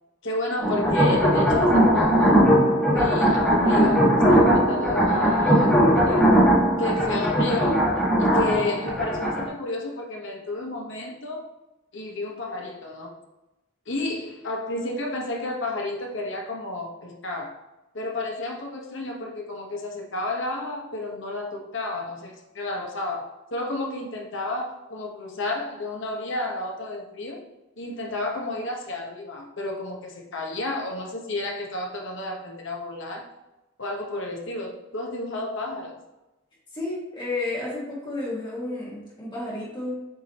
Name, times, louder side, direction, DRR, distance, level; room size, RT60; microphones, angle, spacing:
voice 1, 0.2-2.5 2.9-6.3 6.8-7.9 8.2-11.5 11.9-13.2 13.9-17.6 17.9-27.4 27.8-33.3 33.8-36.0, left 2 dB, 65° left, 0 dB, 1.3 m, -31 dB
sound 1, 0.6-9.5, equal, 5° left, 1.9 m, -19 dB
voice 2, 36.7-40.0, left 2 dB, 25° left, -7 dB, 2.3 m, -31 dB
7.7 x 4.8 x 3.0 m, 0.98 s
head